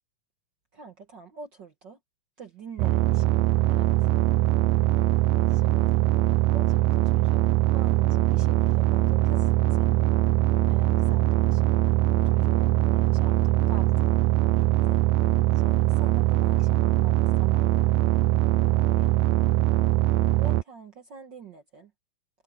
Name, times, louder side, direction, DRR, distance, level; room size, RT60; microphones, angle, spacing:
voice 1, 0.7-2.0 2.4-3.9 5.5-6.0 6.5-7.4 7.7-10.1 10.7-11.8 12.3-14.1 14.5-15.0 15.6-17.7 18.6-19.1 20.4-21.9, right 4 dB, 55° right, 1.2 m, -46 dB
sound 1, 2.8-20.6, right 16 dB, 85° right, 2.3 m, -22 dB
omnidirectional pair, 4.0 m